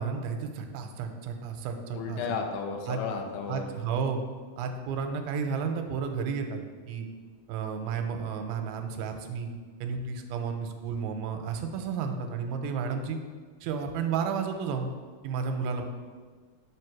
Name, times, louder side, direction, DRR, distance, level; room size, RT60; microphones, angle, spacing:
voice 1, 0.0-2.2 2.9-3.0 3.5-4.2 4.6-6.6 6.9-7.1 7.5-9.5 9.8-13.2 13.6-14.9 15.2-15.8, right 6 dB, 90° right, 5 dB, 2.4 m, -32 dB
voice 2, 1.9-3.6, left 5 dB, 75° left, 3 dB, 1.9 m, -33 dB
8.8 x 3.3 x 5.8 m, 1.5 s
omnidirectional pair, 4.3 m